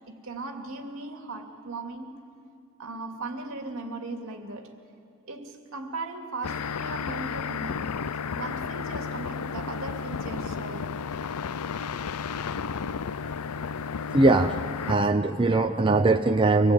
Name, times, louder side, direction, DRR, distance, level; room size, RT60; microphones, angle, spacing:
voice 1, 0.1-2.2 2.8-4.7 5.3-7.8 8.3-10.9, right 3 dB, 65° right, 3 dB, 2.5 m, -38 dB
sound 1, 6.4-14.9, left 6 dB, 85° left, 0.5 m, -33 dB
voice 2, 14.1-14.6 14.9-16.7, right 2 dB, 25° right, 5 dB, 0.7 m, -21 dB
25.0 x 19.5 x 9.0 m, 2.3 s
head